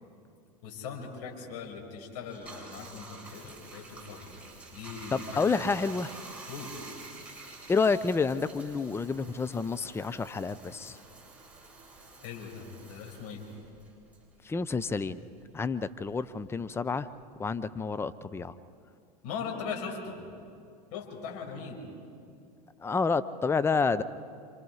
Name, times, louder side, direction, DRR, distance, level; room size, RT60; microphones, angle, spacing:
voice 1, 0.6-4.3 4.7-5.7 6.5-6.7 12.2-13.4 19.2-20.2 20.9-21.8, left 5 dB, 60° left, 1 dB, 6.1 m, -40 dB
Bathtub (filling or washing), 2.2-15.1 15.4-17.2, right 3 dB, 5° right, 7.6 m, -49 dB
voice 2, 5.1-6.1 7.7-11.0 14.4-15.2 15.5-17.1 17.4-18.5 22.8-24.0, left 4 dB, 10° left, 13 dB, 0.7 m, -29 dB
28.5 x 26.5 x 4.8 m, 2.4 s
hypercardioid pair, 90°, 21 cm